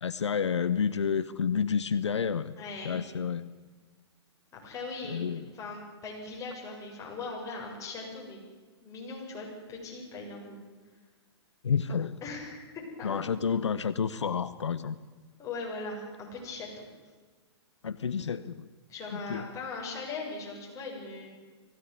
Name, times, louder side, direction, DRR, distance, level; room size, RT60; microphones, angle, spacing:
voice 1, 0.0-2.5 2.8-3.5 5.1-5.5 11.6-12.2 13.0-15.0 17.8-18.7 19.1-19.5, left 6 dB, 85° left, 14 dB, 0.9 m, -30 dB
voice 2, 2.6-3.0 4.5-8.4 8.8-10.6 12.2-13.2 15.4-16.9 18.9-21.3, left 3 dB, 20° left, -2 dB, 7.4 m, -40 dB
20.0 x 16.5 x 9.7 m, 1.4 s
hypercardioid pair, 130°, 14 cm